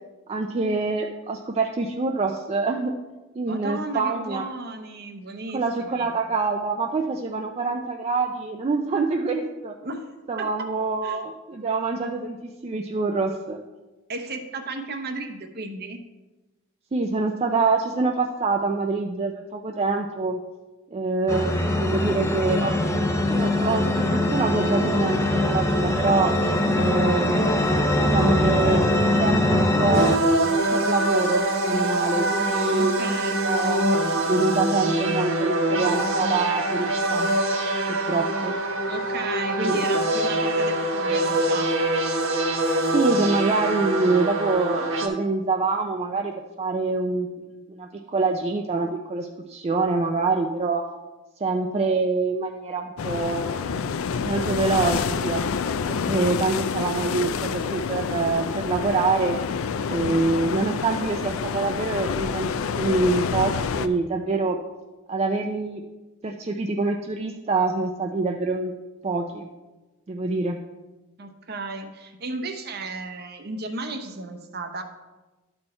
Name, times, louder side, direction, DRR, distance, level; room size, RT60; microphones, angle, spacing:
voice 1, 0.3-2.9 3.4-4.5 5.5-9.8 10.3-13.6 16.9-20.4 20.9-22.7 23.3-26.3 26.8-27.5 28.0-28.8 29.2-30.1 30.7-33.9 34.3-37.3 37.9-38.6 39.5-39.8 42.9-50.8 51.4-53.7 54.2-55.4 55.9-59.4 59.9-64.6 65.1-65.8 66.2-68.7 69.0-69.5 70.1-70.6, right 3 dB, 30° right, 2 dB, 0.4 m, -25 dB
voice 2, 3.5-6.1 9.8-10.1 10.4-10.5 11.0-11.2 14.1-16.0 32.8-33.4 38.9-41.8 71.2-74.8, right 3 dB, 50° right, 6 dB, 0.8 m, -34 dB
sound 1, 21.3-30.2, left 1 dB, 15° left, 0.6 m, -22 dB
sound 2, 29.9-45.1, right 1 dB, 70° right, 1.1 m, -24 dB
sound 3, 53.0-63.9, left 6 dB, 90° left, 0.4 m, -28 dB
11.5 x 4.4 x 4.3 m, 1.1 s
head